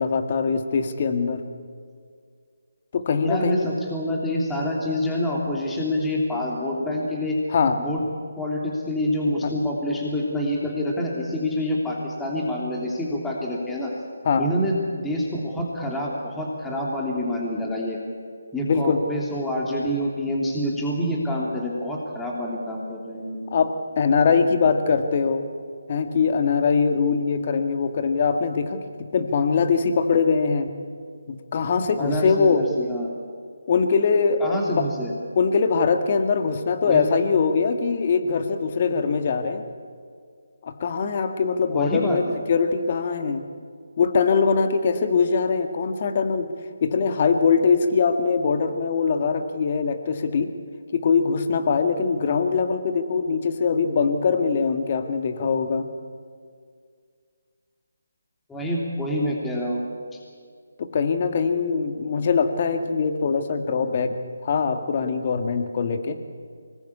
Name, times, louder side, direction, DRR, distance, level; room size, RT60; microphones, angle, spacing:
voice 1, 0.0-1.4 2.9-3.7 7.5-7.8 9.4-9.5 14.2-14.5 18.7-19.0 23.5-25.5 25.9-30.7 31.3-32.7 33.7-34.9 35.4-39.6 40.6-42.2 42.5-43.5 44.0-46.5 46.8-50.5 50.9-55.9 60.8-64.1 64.4-66.2, left 5 dB, 40° left, 7 dB, 1.9 m, -22 dB
voice 2, 3.2-7.4 7.8-8.0 8.4-13.9 14.4-18.0 18.5-23.4 32.0-33.1 34.4-35.1 36.9-37.0 41.7-42.4 58.5-59.8 60.1-60.2, left 1 dB, 5° left, -3 dB, 3.1 m, -27 dB
25.0 x 20.0 x 8.5 m, 2.1 s
figure-of-eight pair, 155°, 0 cm